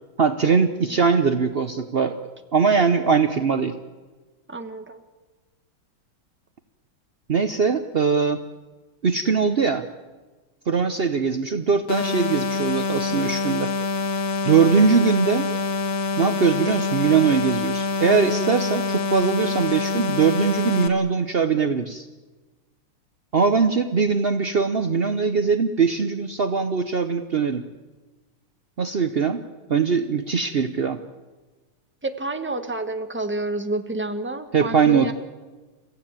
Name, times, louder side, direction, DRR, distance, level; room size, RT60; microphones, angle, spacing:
voice 1, 0.2-2.2 2.5-3.7 7.3-8.4 9.0-9.8 10.7-13.7 14.4-15.5 16.2-22.1 23.3-27.6 28.8-29.4 29.7-31.0 34.5-35.1, right 5 dB, 70° right, 8 dB, 0.5 m, -21 dB
voice 2, 4.5-5.0 32.0-35.1, right 2 dB, 5° right, 7 dB, 1.0 m, -29 dB
sound 1, 11.9-20.9, left 3 dB, 50° left, 1.5 m, -26 dB
30.0 x 15.0 x 8.9 m, 1.3 s
omnidirectional pair, 2.4 m